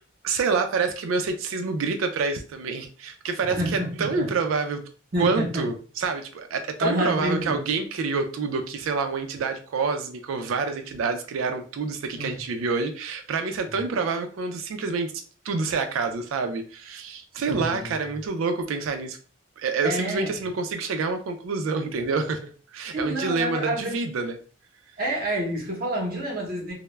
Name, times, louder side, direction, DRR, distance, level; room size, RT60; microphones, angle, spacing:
voice 1, 0.2-4.8 5.2-19.2 19.6-24.4, right 4 dB, 85° right, 6 dB, 0.4 m, -27 dB
voice 2, 3.4-4.3 5.1-5.7 6.8-7.5 12.1-12.4 13.7-13.8 17.5-17.9 19.8-20.3 22.9-24.0 25.0-26.7, equal, 45° right, -2 dB, 0.7 m, -28 dB
2.2 x 2.0 x 3.1 m, 0.39 s
head